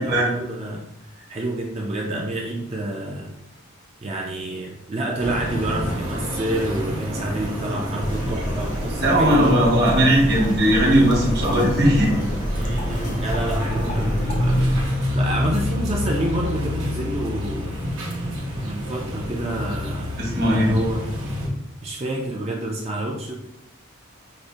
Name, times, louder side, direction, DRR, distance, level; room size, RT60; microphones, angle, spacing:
voice 1, 0.0-3.3 4.0-9.6 12.5-14.7 15.1-17.8 18.6-20.2 20.5-21.0 21.8-23.4, right 1 dB, 30° right, -1 dB, 0.4 m, -28 dB
sound 1, 5.2-21.5, left 1 dB, 80° right, 0.9 m, -28 dB
sound 2, 8.0-14.9, equal, 35° left, 0.5 m, -28 dB
voice 2, 9.0-12.2 20.2-20.7, equal, 50° right, -3 dB, 1.0 m, -18 dB
4.9 x 2.1 x 2.6 m, 0.87 s
head